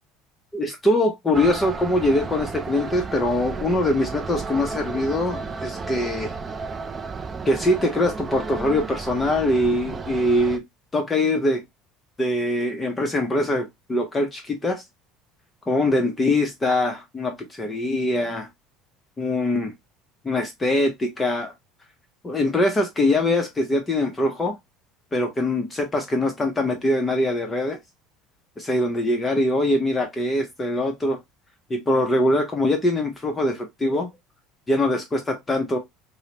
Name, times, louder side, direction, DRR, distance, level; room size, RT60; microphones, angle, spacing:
voice 1, 0.5-6.3 7.4-10.6 10.9-11.6 12.2-14.8 15.7-18.5 19.2-19.7 20.2-21.5 22.2-24.6 25.1-27.8 28.6-31.2 31.7-34.1 34.7-35.8, left 1 dB, 15° left, 0.6 m, -23 dB
sound 1, 1.3-10.6, right 4 dB, 25° right, 0.3 m, -33 dB
4.7 x 2.0 x 2.8 m
cardioid pair, 130°, 0 cm